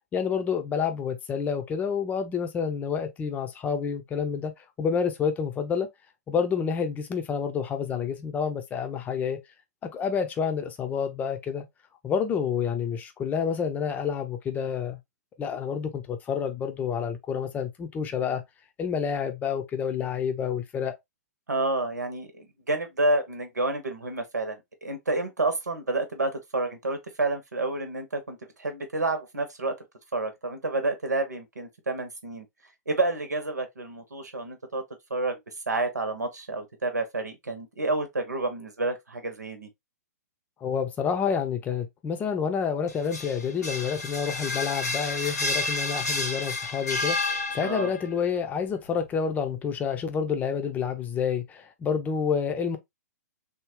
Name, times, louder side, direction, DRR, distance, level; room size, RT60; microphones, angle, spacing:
voice 1, 0.1-4.5 4.8-5.9 6.3-9.4 9.8-11.7 12.0-15.0 15.4-18.4 18.8-21.0 40.6-52.8, left 6 dB, 20° left, 0.6 m, -28 dB
voice 2, 21.5-29.7 30.1-32.4 32.9-34.8 35.1-35.4 35.7-39.7 47.6-47.9, right 2 dB, 85° right, 1.0 m, -29 dB
sound 1, 42.9-48.1, left 3 dB, 80° left, 1.2 m, -30 dB
3.5 x 2.3 x 3.1 m
figure-of-eight pair, 115°, 9 cm